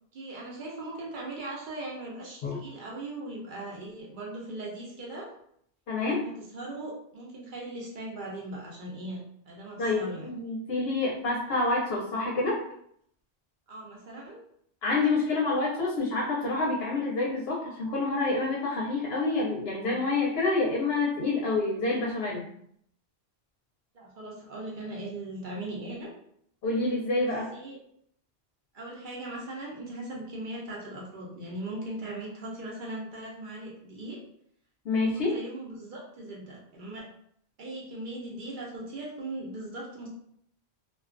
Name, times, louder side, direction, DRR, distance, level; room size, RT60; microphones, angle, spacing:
voice 1, 0.1-5.3 6.0-9.2 9.5-10.3 13.7-14.4 23.9-26.1 27.5-27.8 28.7-34.2 35.1-37.1 37.6-40.1, right 2 dB, 55° right, -3 dB, 0.7 m, -39 dB
voice 2, 5.9-6.2 9.8-12.6 14.8-22.4 26.6-27.5 34.8-35.4, left 3 dB, 70° left, -3 dB, 0.8 m, -27 dB
2.3 x 2.2 x 2.4 m, 0.69 s
omnidirectional pair, 1.1 m